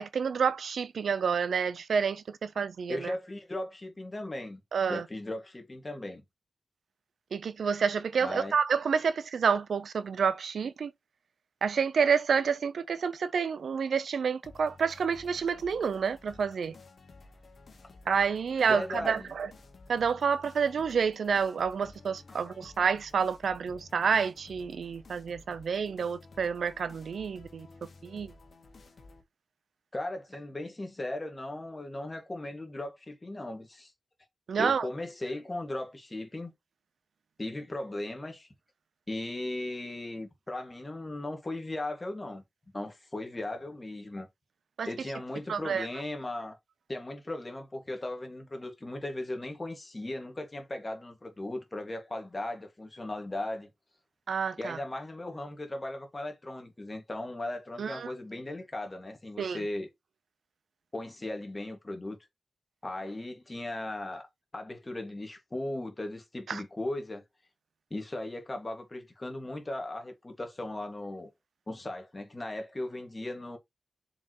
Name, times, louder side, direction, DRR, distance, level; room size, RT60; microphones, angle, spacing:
voice 1, 0.0-3.1 4.7-5.0 7.3-10.9 11.6-16.7 18.1-19.5 19.9-27.7 28.0-28.3 34.5-34.9 44.8-44.9 45.5-45.9 54.3-54.8 57.8-58.1 59.4-59.6 66.5-66.6, right 6 dB, 70° right, 0.5 m, -29 dB
voice 2, 2.9-4.6 4.9-6.2 8.2-8.5 18.6-19.3 22.3-22.4 29.9-33.9 34.6-36.5 37.4-38.5 39.1-42.4 42.7-44.3 44.9-46.6 46.9-53.7 54.6-59.9 60.9-62.2 62.8-64.3 64.5-67.2 67.9-71.3 71.7-73.6, left 1 dB, 20° left, 1.9 m, -37 dB
sound 1, 14.4-29.2, left 3 dB, 50° left, 1.6 m, -54 dB
7.0 x 4.9 x 3.0 m
wide cardioid pair, 165°, 0 cm